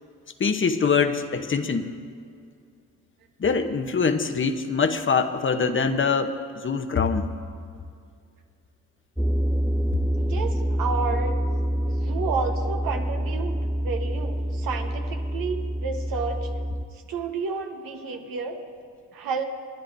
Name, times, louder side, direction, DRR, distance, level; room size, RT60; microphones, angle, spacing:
voice 1, 0.4-1.9 3.4-6.3 6.6-7.3, left 5 dB, 35° left, 8 dB, 0.9 m, -23 dB
sound 1, 9.2-16.9, equal, ahead, 0.4 m, -26 dB
voice 2, 10.2-11.4 11.9-13.5 13.8-16.5 17.1-18.6 19.1-19.4, right 5 dB, 75° right, 4 dB, 1.2 m, -31 dB
27.5 x 10.0 x 2.7 m, 2.2 s
hypercardioid pair, 50°, 35 cm